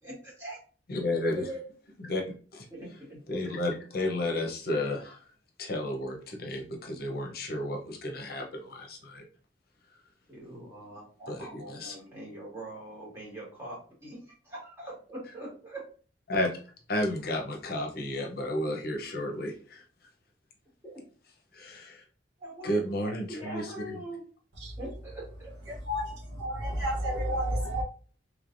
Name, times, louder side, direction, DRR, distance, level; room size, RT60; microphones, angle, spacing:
voice 1, 0.0-0.6 1.3-1.6 2.7-3.2 10.3-15.8 20.8-21.0 22.4-24.2 24.8-25.5, right 1 dB, 15° right, 1.7 m, -42 dB
voice 2, 0.9-1.4 2.0-2.2 2.5-2.7 3.3-5.2 5.6-9.2 11.3-11.9 16.3-16.6 16.9-19.8 21.5-22.0 22.6-24.0, left 1 dB, 55° left, 0.7 m, -32 dB
voice 3, 25.9-27.8, equal, 70° right, 1.2 m, -30 dB
3.3 x 3.2 x 2.5 m
head